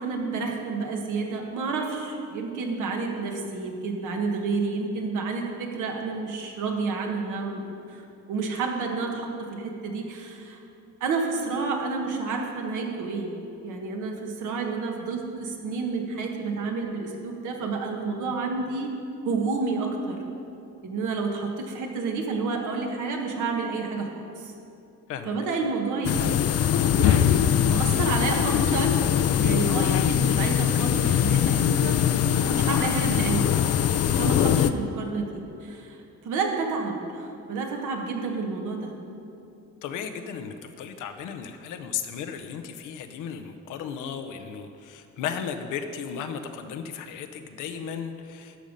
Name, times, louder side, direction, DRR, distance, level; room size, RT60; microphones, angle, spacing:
voice 1, 0.0-8.0 8.3-10.6 11.0-13.4 13.6-18.9 19.2-20.2 20.8-24.5 25.2-26.3 27.0-29.0 29.3-32.0 32.5-33.6 34.1-36.0 36.2-38.9, right 4 dB, 80° right, 1 dB, 1.4 m, -30 dB
sound 1, 26.0-34.7, left 10 dB, 55° left, 0.4 m, -22 dB
voice 2, 39.8-48.6, left 7 dB, 90° left, 8 dB, 0.7 m, -35 dB
12.5 x 5.5 x 5.2 m, 2.8 s
cardioid pair, 90°, 30 cm